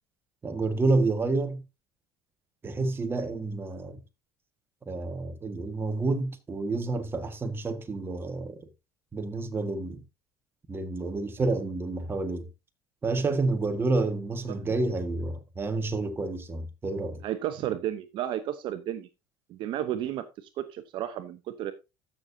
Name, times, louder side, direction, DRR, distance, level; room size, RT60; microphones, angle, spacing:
voice 1, 0.4-1.6 2.6-4.0 4.9-8.6 9.1-10.0 10.7-12.5 13.0-17.2, right 3 dB, 25° right, 1.7 m, -29 dB
voice 2, 17.2-19.1 19.5-21.7, right 11 dB, 60° right, 0.9 m, -33 dB
14.5 x 6.6 x 2.8 m
supercardioid pair, 105°, 9 cm